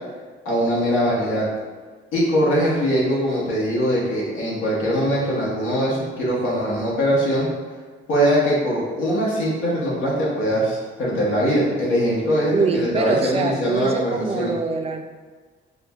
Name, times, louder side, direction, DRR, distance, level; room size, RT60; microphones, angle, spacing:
voice 1, 0.4-1.5 2.1-7.5 8.1-14.5, equal, 85° left, -6 dB, 1.2 m, -21 dB
voice 2, 12.5-15.0, right 4 dB, 30° right, 5 dB, 0.4 m, -24 dB
4.8 x 2.2 x 2.4 m, 1.4 s
cardioid pair, 90°, 20 cm